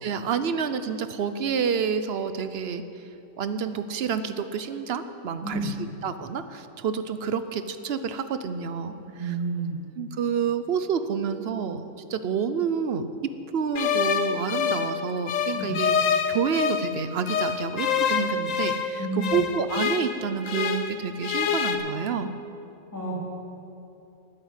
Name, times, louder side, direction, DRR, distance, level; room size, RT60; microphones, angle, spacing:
voice 1, 0.0-2.8 3.4-5.7 6.0-8.9 9.2-9.3 10.0-22.3, right 6 dB, 60° right, 11 dB, 0.8 m, -29 dB
voice 2, 9.0-9.8 15.6-15.7 19.0-19.4 22.9-23.2, right 3 dB, 15° left, -6 dB, 3.5 m, -30 dB
sound 1, 13.8-16.9 17.3-20.9 21.2-21.8, left 7 dB, 85° left, 1.3 m, -26 dB
12.0 x 8.0 x 9.5 m, 2.7 s
omnidirectional pair, 1.3 m